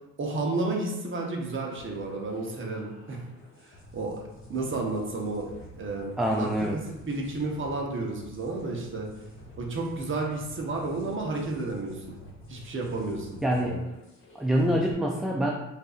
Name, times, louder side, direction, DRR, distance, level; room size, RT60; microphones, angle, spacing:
voice 1, 0.2-3.2 3.6-4.2 4.5-5.5 5.8-6.5 7.1-9.1 9.6-12.2 12.5-13.8, right 2 dB, 40° right, 0 dB, 0.9 m, -32 dB
sound 1, 1.6-14.9, equal, 45° left, 1.2 m, -49 dB
voice 2, 6.2-6.8 13.4-13.8 14.3-15.5, equal, ahead, -1 dB, 0.3 m, -25 dB
4.6 x 2.7 x 2.4 m, 0.92 s
cardioid pair, 90°, 30 cm